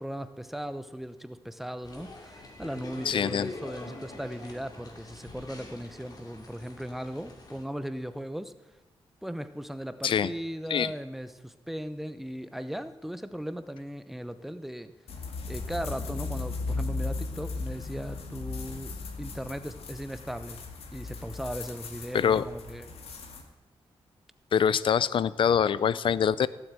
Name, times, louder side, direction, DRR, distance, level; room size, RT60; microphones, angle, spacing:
voice 1, 0.0-8.5 9.2-14.9 15.5-20.6 20.9-22.9, equal, ahead, 11 dB, 0.7 m, -37 dB
sound 1, 1.8-7.6, left 2 dB, 40° left, 2.6 m, -45 dB
voice 2, 3.1-3.5 10.0-10.3 10.7-10.9 22.1-22.4 24.5-26.5, left 8 dB, 60° left, 17 dB, 0.5 m, -24 dB
sound 2, 15.1-23.4, left 3 dB, 85° left, 2.2 m, -37 dB
17.0 x 8.1 x 8.9 m, 1.1 s
wide cardioid pair, 175°, 10 cm